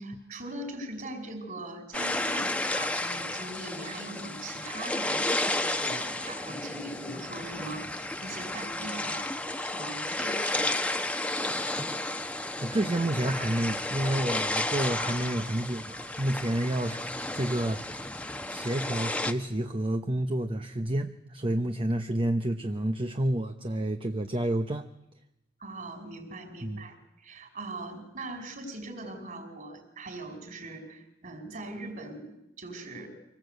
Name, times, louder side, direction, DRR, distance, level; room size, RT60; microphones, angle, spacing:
voice 1, 0.0-9.3 9.6-11.0 25.6-26.9 27.2-32.3 32.6-33.1, right 2 dB, 45° right, 6 dB, 5.1 m, -41 dB
sound 1, 1.9-19.3, left 2 dB, 5° left, 1.0 m, -32 dB
voice 2, 12.6-17.1 17.3-18.1 18.5-24.9 26.6-26.8, right 1 dB, 30° right, 7 dB, 0.9 m, -29 dB
25.0 x 19.5 x 8.0 m, 0.87 s
head